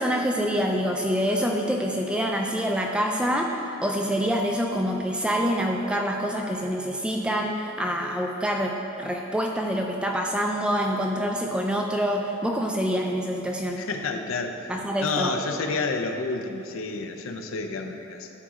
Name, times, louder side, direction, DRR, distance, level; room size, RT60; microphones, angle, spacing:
voice 1, 0.0-13.8 14.7-15.3, equal, 5° right, 1 dB, 0.3 m, -26 dB
voice 2, 13.8-14.7 15.0-18.3, left 3 dB, 65° left, 5 dB, 0.5 m, -30 dB
11.5 x 4.1 x 3.6 m, 2.9 s
head